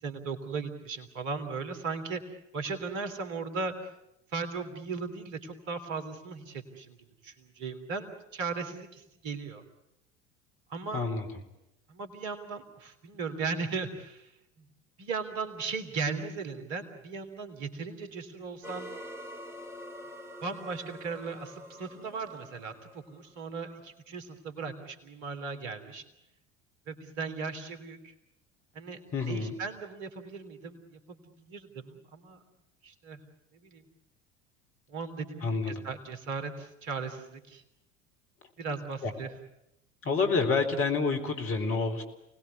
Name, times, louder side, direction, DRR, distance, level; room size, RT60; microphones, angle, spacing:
voice 1, 0.0-3.9 4.3-7.0 7.2-9.6 10.7-11.1 11.9-14.3 14.6-14.7 15.0-18.9 20.4-26.0 26.9-28.1 28.7-29.0 29.3-31.2 31.5-32.4 32.8-33.2 33.6-33.8 34.9-37.6 38.6-39.3, right 4 dB, 50° right, 7 dB, 3.3 m, -37 dB
voice 2, 10.9-11.3 29.1-29.5 35.4-35.8 39.0-39.1 40.0-42.0, left 4 dB, 35° left, 5 dB, 4.0 m, -28 dB
sound 1, 18.6-23.6, equal, 5° right, 2.5 m, -46 dB
28.5 x 20.0 x 9.7 m, 0.87 s
figure-of-eight pair, 70°, 36 cm